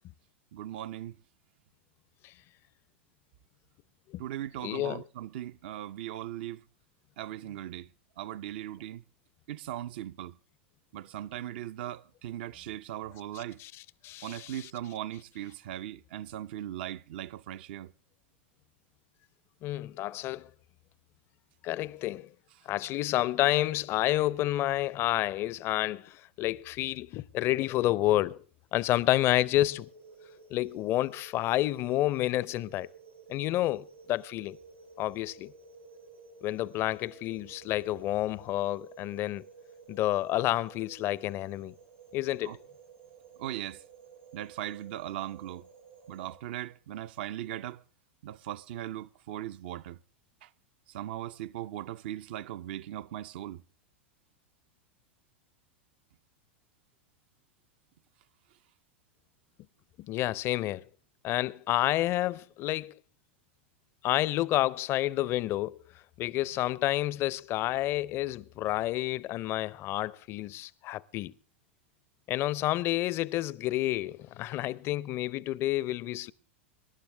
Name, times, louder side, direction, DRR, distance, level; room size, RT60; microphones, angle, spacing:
voice 1, 0.5-1.2 4.2-6.6 7.2-7.9 8.2-9.0 9.5-10.4 10.9-13.6 14.2-17.9 42.4-42.6 43.4-43.8 44.3-45.7 46.1-47.8 48.2-50.0 50.4-50.5 50.9-53.6, right 12 dB, 60° right, 0.6 m, -39 dB
voice 2, 4.6-5.0 13.3-13.7 14.0-14.7 19.6-20.5 21.6-22.3 22.7-28.4 28.7-29.9 30.5-32.9 33.3-34.6 35.0-35.5 36.4-39.4 39.9-41.7 42.1-42.6 60.0-60.8 61.2-62.9 64.0-65.8 66.2-71.3 72.3-76.3, left 15 dB, 40° left, 0.6 m, -29 dB
sound 1, 29.1-46.4, right 5 dB, 90° right, 4.4 m, -53 dB
26.0 x 11.5 x 3.4 m
figure-of-eight pair, 95°, 7 cm